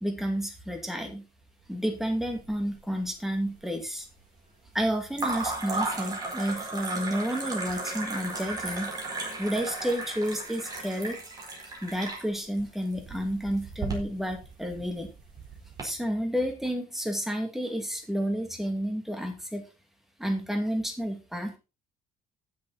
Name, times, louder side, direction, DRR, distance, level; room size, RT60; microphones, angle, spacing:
voice 1, 0.0-1.2 1.7-4.1 4.7-8.9 9.4-11.2 11.8-15.1 15.8-19.6 20.2-21.6, equal, ahead, 4 dB, 2.3 m, -30 dB
sound 1, 2.0-2.8 3.0-3.7 5.1-15.8, right 3 dB, 25° right, 4.5 m, -35 dB
14.0 x 7.0 x 4.2 m, 0.30 s
cardioid pair, 175°, 16 cm